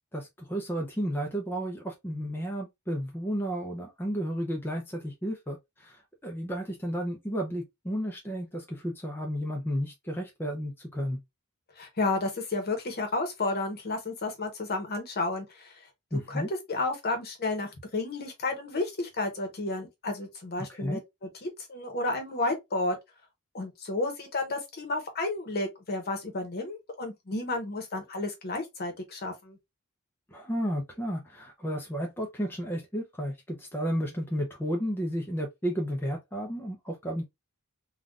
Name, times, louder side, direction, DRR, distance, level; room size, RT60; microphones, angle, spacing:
voice 1, 0.1-11.2 16.1-16.5 20.7-21.0 30.3-37.2, equal, 10° left, 0.6 m, -32 dB
voice 2, 11.8-15.7 16.1-23.0 23.5-29.6, left 2 dB, 45° left, 1.0 m, -32 dB
3.6 x 2.4 x 2.4 m
head